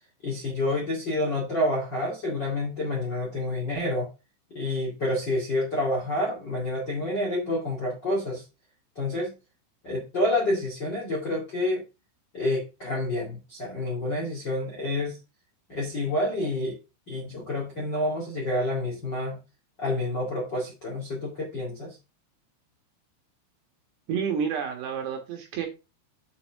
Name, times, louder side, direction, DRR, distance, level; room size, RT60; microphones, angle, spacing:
voice 1, 0.2-4.1 4.5-8.4 9.0-9.3 9.8-11.8 12.3-15.2 15.7-16.8 17.1-19.4 19.8-22.0, left 1 dB, 35° left, 1.7 m, -28 dB
voice 2, 24.1-25.7, right 7 dB, 65° right, 3.1 m, -29 dB
8.2 x 6.0 x 3.5 m
omnidirectional pair, 5.9 m